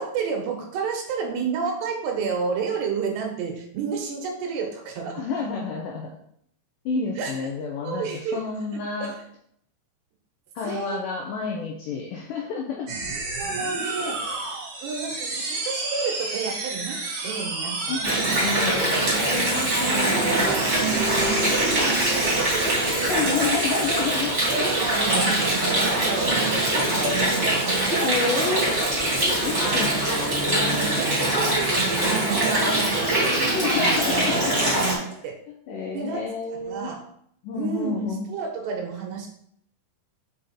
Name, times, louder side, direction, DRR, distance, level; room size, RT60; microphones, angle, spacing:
voice 1, 0.0-5.3 7.2-7.4 7.8-8.4 8.7-9.2 10.6-11.0 13.4-14.4 14.8-18.0 20.1-23.4 24.5-28.0 28.4-28.5 29.4-30.0 30.7-34.0 35.2-35.3 35.9-36.3 36.7-37.0 37.5-39.3, right 5 dB, 80° right, 1 dB, 3.4 m, -31 dB
voice 2, 5.1-6.1 6.9-9.1 10.6-12.9 17.9-18.1 18.4-20.6 23.1-24.4 28.0-28.8 29.4-29.9 30.5-30.8 33.5-34.7 35.1-36.9 37.4-38.3, left 4 dB, 80° left, 0 dB, 1.9 m, -30 dB
sound 1, 12.9-28.7, right 3 dB, 55° right, 2.3 m, -32 dB
Water, 18.0-34.9, right 1 dB, 20° right, 2.5 m, -23 dB
6.4 x 5.3 x 4.3 m, 0.68 s
omnidirectional pair, 4.8 m